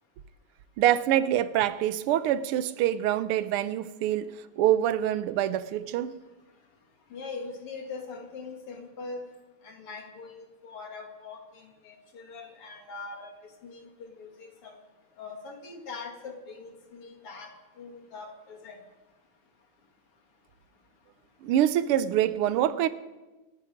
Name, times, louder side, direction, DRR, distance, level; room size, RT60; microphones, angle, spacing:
voice 1, 0.8-6.1 21.4-22.9, right 11 dB, 85° right, 14 dB, 1.7 m, -25 dB
voice 2, 7.1-9.2 9.6-13.3 13.6-14.7 15.2-17.5 17.8-18.8, left 4 dB, 90° left, 3 dB, 3.1 m, -42 dB
27.0 x 9.6 x 5.1 m, 1.2 s
omnidirectional pair, 2.4 m